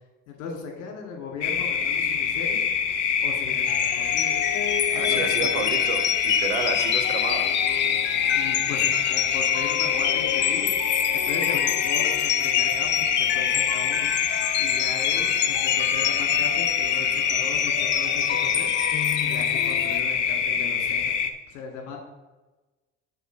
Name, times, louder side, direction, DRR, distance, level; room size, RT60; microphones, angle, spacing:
voice 1, 0.3-2.6 3.2-4.3 4.9-5.6 8.3-10.7 11.1-14.1 14.6-18.7 19.2-21.2 21.5-22.0, left 5 dB, 65° left, 1 dB, 2.0 m, -37 dB
sound 1, 1.4-21.3, left 7 dB, 80° left, 0.7 m, -25 dB
sound 2, 3.7-20.0, left 11 dB, 35° left, 0.4 m, -28 dB
voice 2, 4.9-7.5, right 4 dB, 75° right, 6 dB, 1.0 m, -31 dB
7.0 x 4.0 x 6.2 m, 1.2 s
hypercardioid pair, 60°, 35 cm